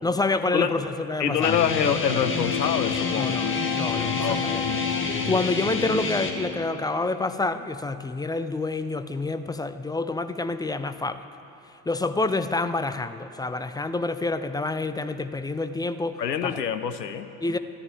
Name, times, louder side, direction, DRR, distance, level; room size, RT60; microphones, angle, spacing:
voice 1, 0.0-1.5 3.2-4.5 5.3-11.2 11.9-16.5 17.4-17.6, left 3 dB, 10° left, 10 dB, 0.4 m, -28 dB
voice 2, 1.2-3.4 4.2-4.7 16.2-17.3, left 8 dB, 90° left, 10 dB, 0.7 m, -26 dB
Guitar, 1.4-6.3, left 4 dB, 25° left, 1.8 m, -29 dB
Wind instrument woodwind instrument, 1.9-6.9, left 8 dB, 50° left, 1.5 m, -32 dB
13.0 x 11.0 x 8.4 m, 2.8 s
figure-of-eight pair, 60°, 48 cm